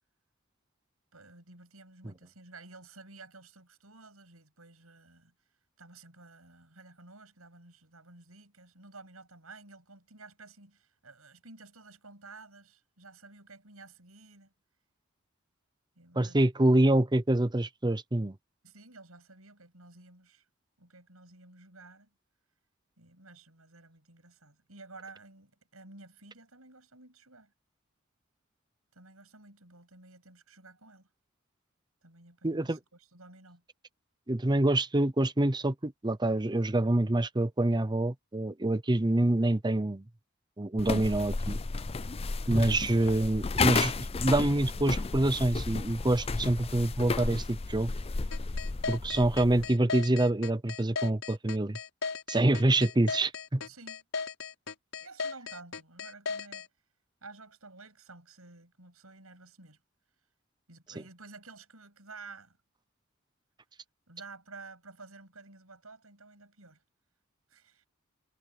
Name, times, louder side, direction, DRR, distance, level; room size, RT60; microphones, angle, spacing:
voice 1, 1.1-5.3 5.8-14.5 16.0-16.4 18.6-20.4 20.8-22.1 23.0-27.5 28.9-31.1 32.0-33.6 53.6-54.0 55.0-56.7 57.2-59.8 60.7-62.6 64.1-66.8 67.5-67.9, right 3 dB, 80° right, 8.0 m, -52 dB
voice 2, 16.2-18.4 32.4-32.8 34.3-40.0 40.6-41.6 42.5-47.9 48.9-51.8 52.3-53.6, right 1 dB, 20° right, 0.8 m, -26 dB
sound 1, 40.8-49.7, left 4 dB, 30° left, 0.5 m, -33 dB
sound 2, 48.3-56.7, left 5 dB, 70° left, 5.5 m, -36 dB
head